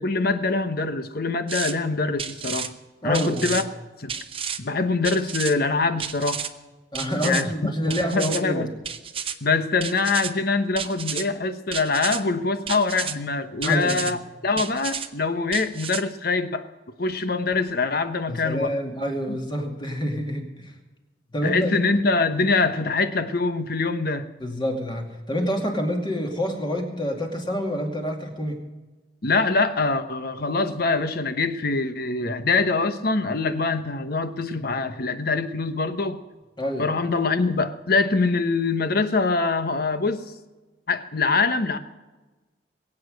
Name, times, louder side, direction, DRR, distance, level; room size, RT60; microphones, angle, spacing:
voice 1, 0.0-2.7 3.0-3.6 4.0-4.1 4.6-6.4 7.2-8.7 9.4-14.2 14.4-16.6 17.0-18.7 19.3-19.4 21.4-24.2 29.2-36.2 36.8-40.2 40.9-41.8, left 3 dB, 55° left, 10 dB, 1.0 m, -24 dB
sound 1, 1.5-1.7 2.2-2.7 3.1-3.6 4.1-4.6 5.0-5.5 6.0-6.5 6.9-7.4 7.9-8.4 8.8-9.3 9.8-10.3 10.8-11.2 11.7-12.2 12.7-13.1 13.6-14.1 14.6-15.1 15.5-16.0, right 7 dB, 30° right, 0.8 m, -31 dB
voice 2, 3.0-3.6 6.9-8.7 13.6-14.2 18.3-20.7 21.3-21.8 24.4-28.6 36.6-36.9, equal, 25° left, 2 dB, 2.4 m, -27 dB
21.5 x 8.7 x 6.4 m, 1.2 s
head